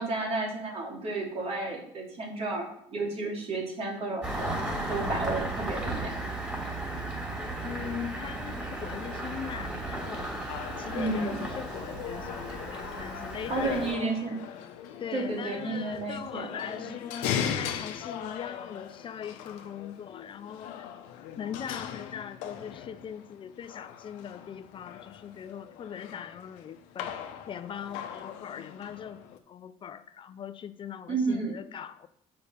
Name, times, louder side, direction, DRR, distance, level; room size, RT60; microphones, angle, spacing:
voice 1, 0.0-4.6 4.9-6.4 10.9-11.4 13.5-14.4 15.1-16.5 31.1-31.6, right 3 dB, 55° right, 0 dB, 2.5 m, -32 dB
Engine starting, 4.2-13.9, right 2 dB, 10° right, 2.8 m, -35 dB
voice 2, 7.6-10.5 10.8-14.0 15.0-20.8 21.4-27.1 27.5-32.1, left 8 dB, 40° left, 13 dB, 0.5 m, -40 dB
sound 1, 10.5-29.4, left 9 dB, 85° left, 0.8 m, -39 dB
6.9 x 5.6 x 5.4 m, 0.70 s
supercardioid pair, 90°, 13 cm